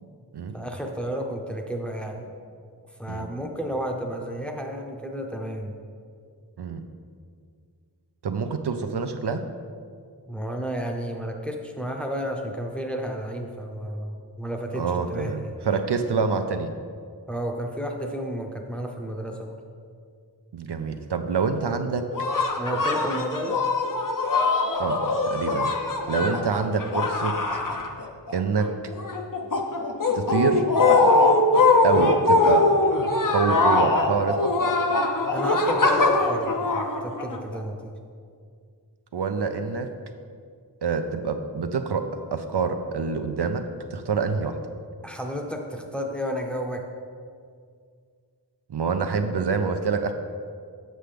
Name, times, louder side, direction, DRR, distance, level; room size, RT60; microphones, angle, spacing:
voice 1, 0.5-2.3 3.0-5.7 10.3-14.8 15.1-15.6 17.3-19.6 22.6-23.6 26.2-26.4 35.3-37.9 45.0-46.8, equal, 5° left, 2 dB, 0.7 m, -32 dB
voice 2, 8.2-9.4 14.7-15.4 15.6-16.7 20.5-22.1 24.8-25.7 26.1-27.6 28.3-28.7 30.1-30.6 31.8-32.7 33.3-34.6 39.1-39.9 40.8-43.6 43.9-44.6 48.7-50.1, right 5 dB, 70° right, 7 dB, 0.5 m, -26 dB
sound 1, 22.1-28.3 28.6-37.6, left 3 dB, 50° left, 0.7 m, -22 dB
7.6 x 6.5 x 3.4 m, 2.2 s
wide cardioid pair, 55°, 43 cm